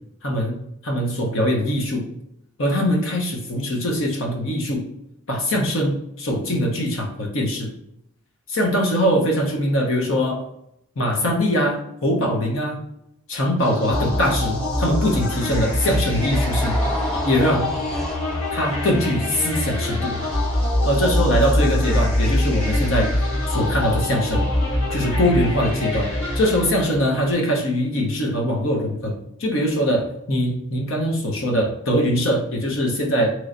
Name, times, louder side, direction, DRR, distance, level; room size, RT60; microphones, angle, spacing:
voice 1, 0.2-2.1 2.6-4.9 5.3-7.7 8.5-10.5 11.0-12.8 13.3-16.8 17.2-17.7 18.5-20.2 20.9-23.2 23.5-24.5 24.9-33.3, equal, 65° left, 0 dB, 0.9 m, -22 dB
sound 1, 13.6-27.3, left 1 dB, 85° left, 1.1 m, -24 dB
sound 2, 16.1-22.3, equal, 5° left, 0.3 m, -34 dB
3.1 x 3.0 x 2.6 m, 0.79 s
head